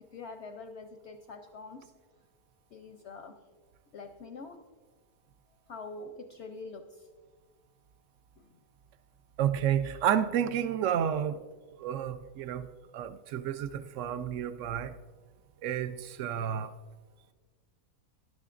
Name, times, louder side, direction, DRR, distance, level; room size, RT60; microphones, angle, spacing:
voice 1, 0.1-1.9 2.7-3.3 3.9-4.6 5.7-7.1 8.4-8.5, left 3 dB, 60° left, 0.7 m, -45 dB
voice 2, 9.4-11.4 11.7-14.9 15.6-16.7, right 9 dB, 70° right, 0.7 m, -31 dB
12.5 x 11.0 x 2.5 m
omnidirectional pair, 1.7 m